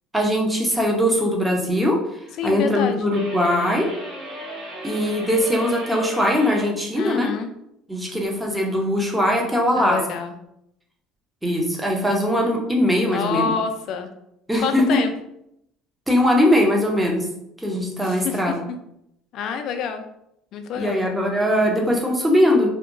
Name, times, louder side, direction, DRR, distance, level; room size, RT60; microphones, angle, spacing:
voice 1, 0.1-2.0 2.4-3.9 4.8-7.3 7.9-10.0 11.4-13.5 14.5-15.0 16.1-17.3 17.6-18.6 20.8-22.7, left 1 dB, 10° right, 0 dB, 0.6 m, -20 dB
voice 2, 2.4-3.0 6.9-7.5 9.7-10.3 13.1-14.1 14.6-15.1 18.0-18.8 19.3-20.0 20.5-21.0, left 6 dB, 60° left, 7 dB, 0.3 m, -27 dB
sound 1, 3.1-6.7, equal, 55° right, 1.2 m, -35 dB
2.7 x 2.1 x 2.5 m, 0.78 s
supercardioid pair, 110°, 0 cm